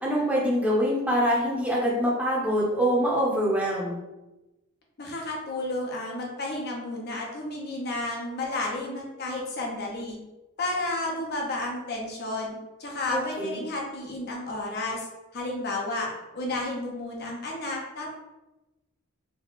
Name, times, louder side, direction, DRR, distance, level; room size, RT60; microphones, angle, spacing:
voice 1, 0.0-4.0 13.1-13.7, equal, 5° right, -5 dB, 0.7 m, -25 dB
voice 2, 5.0-10.2 10.6-16.1 16.3-18.1, left 2 dB, 50° left, -1 dB, 0.6 m, -32 dB
3.5 x 2.2 x 3.9 m, 1.0 s
head